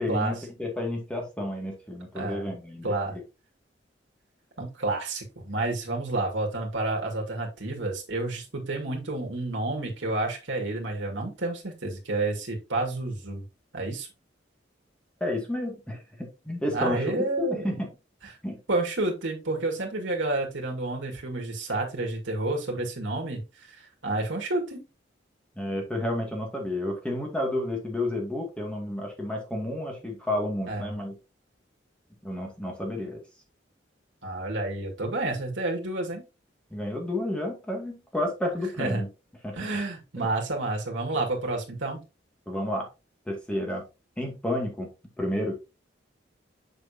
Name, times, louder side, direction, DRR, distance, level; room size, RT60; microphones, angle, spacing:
voice 1, 0.0-3.2 15.2-17.9 18.4-18.6 25.6-31.1 32.2-33.2 36.7-39.1 39.4-39.5 40.2-40.3 42.5-42.9 43.3-43.8 44.2-44.9 45.2-45.5, left 1 dB, 5° left, 1 dB, 2.1 m, -31 dB
voice 2, 2.2-2.5 2.8-3.1 4.6-13.5 13.7-14.1 16.7-17.8 18.2-18.3 18.7-23.7 24.0-24.8 30.7-31.0 34.2-36.2 38.8-39.0 39.5-42.0, right 2 dB, 85° right, 1 dB, 2.0 m, -30 dB
6.7 x 6.4 x 2.8 m, 0.28 s
head